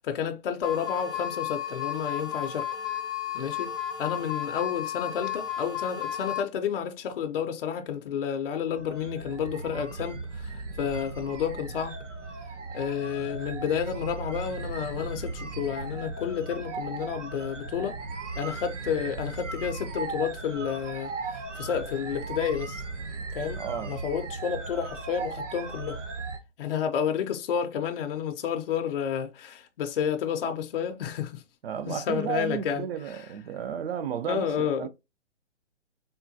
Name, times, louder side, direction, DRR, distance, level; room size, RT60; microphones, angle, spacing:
voice 1, 0.0-2.7 3.3-3.7 4.0-11.9 12.7-18.0 18.4-22.8 23.3-23.6 23.9-26.0 26.6-31.4 31.9-33.2 34.3-34.9, left 8 dB, 50° left, 0.5 m, -30 dB
sound 1, 0.6-6.4, left 10 dB, ahead, 0.5 m, -33 dB
sound 2, 8.7-26.4, right 4 dB, 80° right, 0.9 m, -37 dB
voice 2, 23.6-24.0 31.6-34.9, right 8 dB, 55° right, 0.5 m, -33 dB
3.6 x 2.2 x 2.6 m
hypercardioid pair, 145°, 36 cm